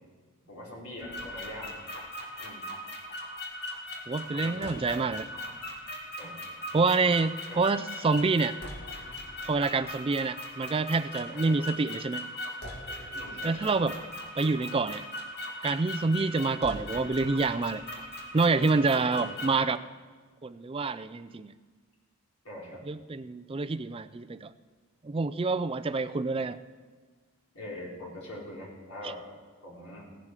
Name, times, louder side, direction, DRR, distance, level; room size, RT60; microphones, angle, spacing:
voice 1, 0.5-1.7 2.4-2.6 4.3-4.7 6.2-6.4 7.5-7.6 11.2-11.6 13.1-13.9 18.9-19.3 22.4-22.8 27.5-29.2 29.6-30.1, left 1 dB, 85° left, -4 dB, 5.0 m, -43 dB
sound 1, 1.0-19.6, left 1 dB, 50° left, 2.2 m, -39 dB
voice 2, 4.1-5.3 6.2-6.4 6.7-8.6 9.4-12.2 13.4-14.0 14.4-15.0 15.6-17.8 18.3-19.8 20.4-21.5 22.9-24.5 25.0-26.6, right 3 dB, 25° right, 13 dB, 0.4 m, -27 dB
17.5 x 12.0 x 4.9 m, 1.5 s
head